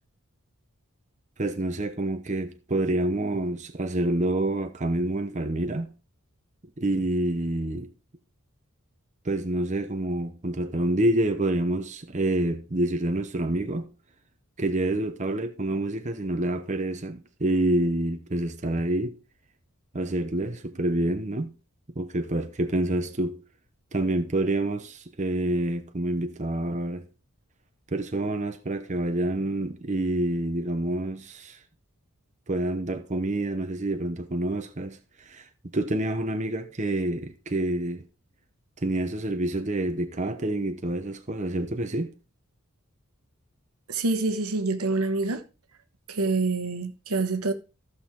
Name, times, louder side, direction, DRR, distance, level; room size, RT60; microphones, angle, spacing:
voice 1, 1.4-5.9 6.8-7.9 9.2-13.9 14.6-19.2 19.9-21.5 21.9-23.4 23.9-27.1 27.9-31.6 32.5-35.5 35.7-38.0 38.8-42.1, right 1 dB, 35° right, 0.9 m, -27 dB
voice 2, 43.9-45.4 46.1-47.5, right 3 dB, 80° right, 1.2 m, -26 dB
14.5 x 6.5 x 3.7 m
head